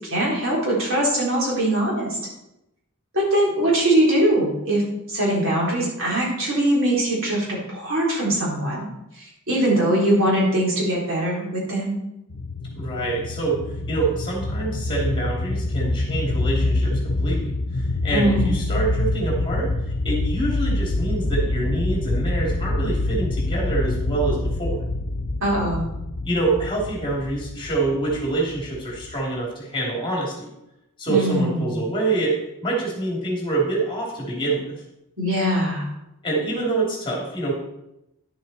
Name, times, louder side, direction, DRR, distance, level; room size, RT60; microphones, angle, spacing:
voice 1, 0.1-2.2 3.1-8.8 9.2-12.0 18.1-18.6 25.4-25.9 31.1-31.9 35.2-35.9, right 1 dB, 65° right, -4 dB, 4.0 m, -22 dB
sound 1, 12.3-29.3, left 2 dB, 70° left, 0.7 m, -26 dB
voice 2, 12.7-24.8 26.2-30.5 31.0-34.7 36.2-37.5, right 2 dB, 25° left, -3 dB, 2.9 m, -26 dB
11.0 x 7.6 x 4.3 m, 0.88 s
head